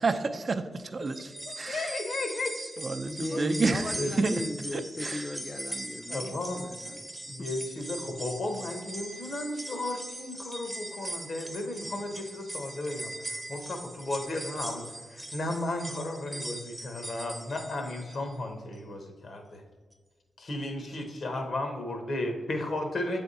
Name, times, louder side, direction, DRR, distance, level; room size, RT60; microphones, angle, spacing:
voice 1, 0.0-1.9 2.8-4.4 4.7-5.3, right 4 dB, 55° right, 9 dB, 0.4 m, -30 dB
sound 1, 1.0-18.3 18.7-18.8 19.9-20.0, right 1 dB, 15° right, 0.7 m, -40 dB
voice 2, 1.2-2.6 3.3-3.4 4.0-4.3 6.1-6.7 7.3-19.6 20.4-23.2, left 2 dB, 70° left, 5 dB, 1.0 m, -34 dB
voice 3, 3.1-7.0 7.3-7.5, left 2 dB, 30° left, 6 dB, 0.3 m, -37 dB
7.6 x 3.5 x 4.1 m, 1.4 s
supercardioid pair, 45°, 0 cm